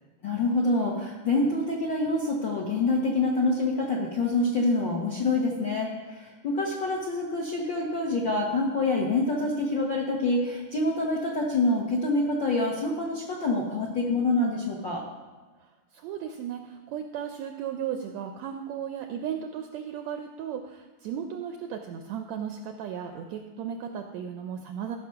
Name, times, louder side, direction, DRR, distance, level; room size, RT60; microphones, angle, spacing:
voice 1, 0.2-15.0, left 2 dB, 65° left, -2 dB, 1.2 m, -26 dB
voice 2, 15.9-25.0, right 8 dB, 80° right, 5 dB, 1.6 m, -35 dB
14.0 x 6.1 x 5.7 m, 1.3 s
omnidirectional pair, 3.8 m